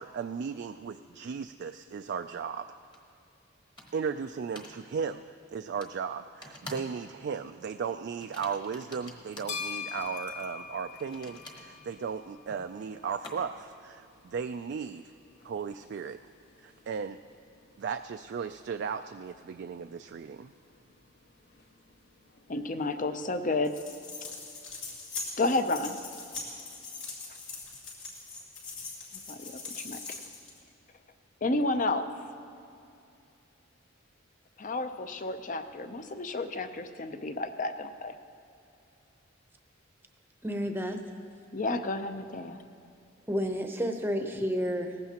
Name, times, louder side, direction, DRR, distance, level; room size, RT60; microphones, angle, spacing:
voice 1, 0.0-2.7 3.9-15.0 15.4-16.2 16.6-17.2 17.8-20.5, right 6 dB, 55° right, 7 dB, 0.3 m, -36 dB
sound 1, 2.9-3.0 3.8-4.1 4.6-4.8 5.8-5.9 6.4-7.0 7.2-7.5 8.2-9.6 11.0-13.7, left 1 dB, 25° left, 1.3 m, -47 dB
sound 2, 9.1-23.0, left 6 dB, 55° left, 0.9 m, -47 dB
voice 2, 22.5-23.8 25.4-26.0 29.3-30.0 31.4-32.1 34.6-38.1 41.5-42.6, left 2 dB, 40° left, 9 dB, 0.6 m, -31 dB
sound 3, 23.6-30.6, left 3 dB, 75° left, 2.6 m, -41 dB
voice 3, 40.4-41.1 43.3-45.0, equal, 10° right, 4 dB, 0.7 m, -30 dB
19.0 x 15.0 x 2.9 m, 2.6 s
head